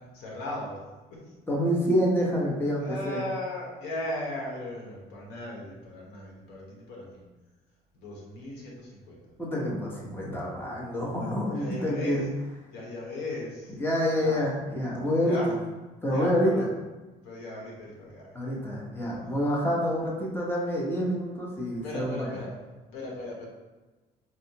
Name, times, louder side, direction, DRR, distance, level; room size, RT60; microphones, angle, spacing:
voice 1, 0.1-0.8 1.1-1.2 2.8-7.2 7.9-9.2 11.5-12.2 12.7-13.7 14.2-14.4 15.2-15.5 16.1-16.7 17.2-18.6 21.8-22.5 22.9-23.5, left 1 dB, 85° left, -2 dB, 1.1 m, -37 dB
voice 2, 1.5-3.2 9.4-12.2 13.8-15.6 16.0-16.7 18.3-22.4, equal, 15° left, -3 dB, 0.9 m, -27 dB
4.2 x 2.3 x 2.9 m, 1.2 s
cardioid pair, 110°, 17 cm